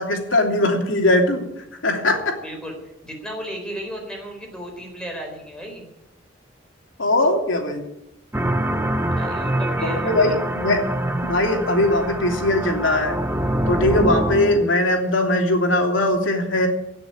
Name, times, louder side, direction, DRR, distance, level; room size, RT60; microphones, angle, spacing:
voice 1, 0.0-1.4 1.8-2.4 7.0-7.9 9.8-10.8 11.2-13.2 13.7-16.7, left 1 dB, 80° left, 2 dB, 3.0 m, -20 dB
voice 2, 2.4-5.9 9.2-10.3, equal, 5° left, 1 dB, 4.3 m, -34 dB
sound 1, 8.3-14.6, right 1 dB, 10° right, 0.9 m, -25 dB
17.5 x 6.9 x 9.9 m, 0.86 s
head